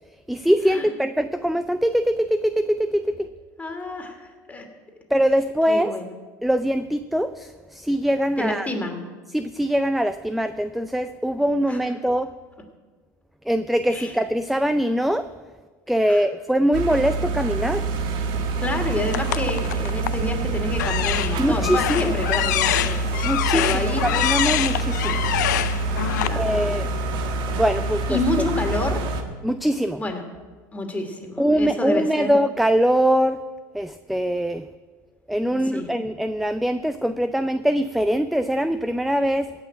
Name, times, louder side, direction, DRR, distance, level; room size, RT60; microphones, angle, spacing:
voice 1, 0.3-3.3 5.1-6.0 6.4-8.7 9.3-12.3 13.5-15.3 15.9-17.9 21.4-22.1 23.2-25.2 26.3-26.9 27.5-28.2 29.4-30.0 31.4-33.4 33.7-34.6 35.3-39.5, equal, ahead, 12 dB, 0.5 m, -22 dB
voice 2, 3.6-4.6 5.7-6.1 8.4-9.0 11.7-11.8 13.9-14.1 16.1-16.2 18.6-24.0 26.2-27.0 28.1-29.0 30.0-30.2 30.7-32.3 35.5-35.8, left 2 dB, 15° left, 3 dB, 2.6 m, -29 dB
sound 1, 16.7-29.2, right 2 dB, 55° right, 1.6 m, -26 dB
sound 2, 19.1-20.3 20.7-26.3, left 14 dB, 85° left, 0.4 m, -25 dB
16.0 x 6.0 x 8.9 m, 1.4 s
hypercardioid pair, 90°, 9 cm